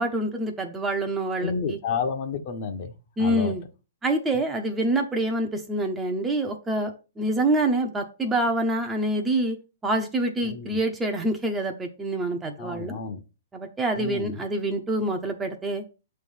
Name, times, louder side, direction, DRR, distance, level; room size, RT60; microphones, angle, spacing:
voice 1, 0.0-1.8 3.2-3.6 4.0-9.6 9.8-13.0 13.5-15.8, right 1 dB, 10° right, 0.7 m, -26 dB
voice 2, 1.4-2.9 3.2-3.5 10.4-10.8 12.6-13.2 13.9-14.4, left 6 dB, 45° left, 1.0 m, -30 dB
6.8 x 3.3 x 5.4 m
hypercardioid pair, 155°, 0 cm